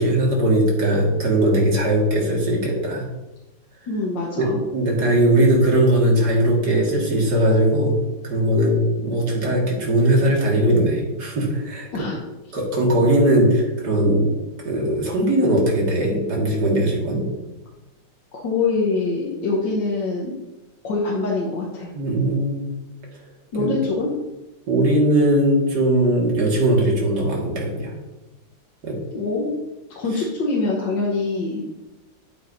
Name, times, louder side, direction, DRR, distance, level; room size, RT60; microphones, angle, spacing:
voice 1, 0.0-3.1 4.4-8.0 8.2-12.1 12.5-14.3 14.6-17.2 21.9-22.7 23.6-23.7 24.7-27.9 28.8-29.0, right 1 dB, 50° right, -2 dB, 2.6 m, -19 dB
voice 2, 3.9-4.6 11.9-12.2 18.3-20.3 20.8-21.9 23.5-24.1 29.1-29.5 30.0-31.7, left 3 dB, 60° left, -4 dB, 1.8 m, -24 dB
9.7 x 8.7 x 2.7 m, 1.0 s
omnidirectional pair, 2.3 m